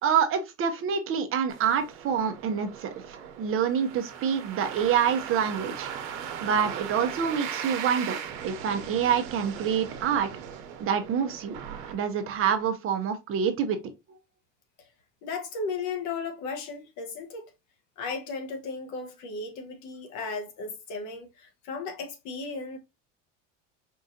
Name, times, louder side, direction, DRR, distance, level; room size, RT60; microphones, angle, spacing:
voice 1, 0.0-5.9 6.4-8.2 8.4-10.3 10.8-11.6 11.9-13.8, right 7 dB, 40° right, 0.9 m, -27 dB
sound 1, 1.5-12.7, right 8 dB, 80° right, 1.1 m, -39 dB
voice 2, 15.2-17.5 18.0-22.8, left 4 dB, 55° left, 1.1 m, -35 dB
4.7 x 2.6 x 2.7 m
supercardioid pair, 135°, 35 cm